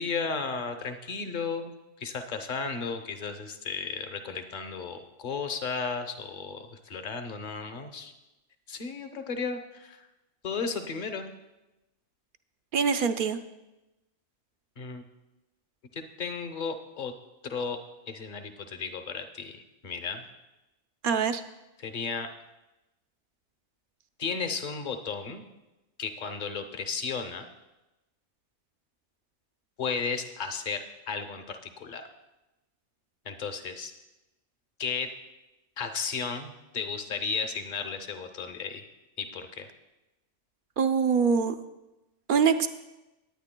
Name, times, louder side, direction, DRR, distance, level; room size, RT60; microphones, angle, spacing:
voice 1, 0.0-1.7 2.0-8.1 8.7-10.1 10.4-11.3 14.8-15.0 15.9-17.1 17.4-17.8 18.0-20.3 21.8-22.3 24.2-25.4 26.0-27.4 29.8-32.0 33.2-33.9 34.8-35.1 35.8-38.9 39.2-39.7, left 5 dB, 45° left, 7 dB, 0.9 m, -34 dB
voice 2, 12.7-13.4 21.0-21.4 40.8-41.5 42.3-42.7, right 6 dB, 60° right, 9 dB, 0.6 m, -24 dB
18.5 x 9.5 x 2.2 m, 1.0 s
omnidirectional pair, 1.2 m